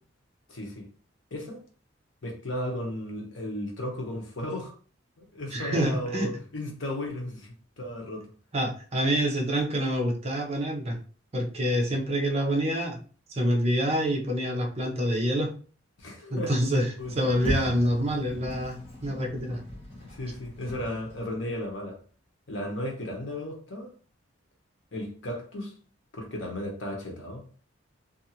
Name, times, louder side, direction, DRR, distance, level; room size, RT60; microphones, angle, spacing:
voice 1, 0.5-0.9 1.3-1.6 2.2-4.7 5.2-8.3 16.0-17.2 20.0-22.0 22.5-23.9 24.9-25.7 26.1-27.6, left 1 dB, 70° left, 0.9 m, -35 dB
voice 2, 5.5-6.3 8.5-11.0 11.3-13.0 13.3-15.5 16.3-19.6, equal, 30° right, 0.6 m, -27 dB
Sliding door, 17.0-21.4, left 1 dB, 30° left, 0.9 m, -37 dB
2.6 x 2.4 x 2.7 m
head